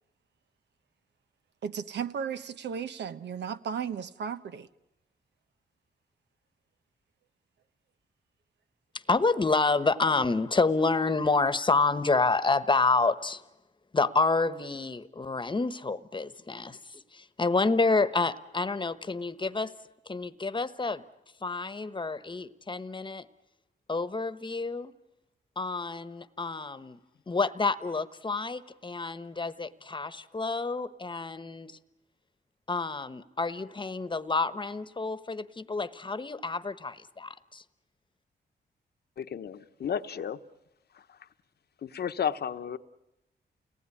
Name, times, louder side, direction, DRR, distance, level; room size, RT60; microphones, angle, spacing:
voice 1, 1.6-4.7, right 7 dB, 85° right, 1.0 m, -35 dB
voice 2, 8.9-13.4 13.9-19.7 20.1-21.0 21.4-23.2 23.9-24.9 25.6-27.0 27.3-31.8 32.7-37.6, left 3 dB, 25° left, 1.2 m, -28 dB
voice 3, 39.2-40.4 40.9-41.3 41.8-42.8, left 8 dB, 70° left, 1.1 m, -33 dB
29.5 x 19.0 x 9.9 m
cardioid pair, 85°, 18 cm